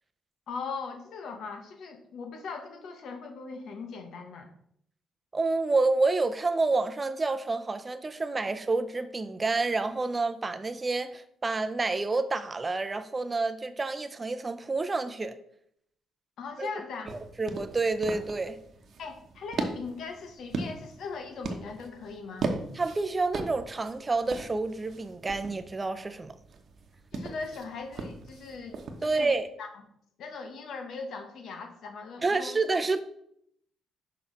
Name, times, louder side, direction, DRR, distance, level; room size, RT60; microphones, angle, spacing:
voice 1, 0.5-4.5 16.4-17.1 19.0-22.5 27.1-29.7 30.2-32.5, left 4 dB, 70° left, 1.0 m, -39 dB
voice 2, 5.3-15.3 16.6-16.7 17.1-18.6 22.7-26.3 29.0-29.5 32.2-33.0, right 3 dB, 25° right, 0.6 m, -29 dB
sound 1, 17.1-29.4, right 3 dB, 55° right, 1.0 m, -39 dB
6.1 x 5.3 x 3.9 m
cardioid pair, 90°, 0 cm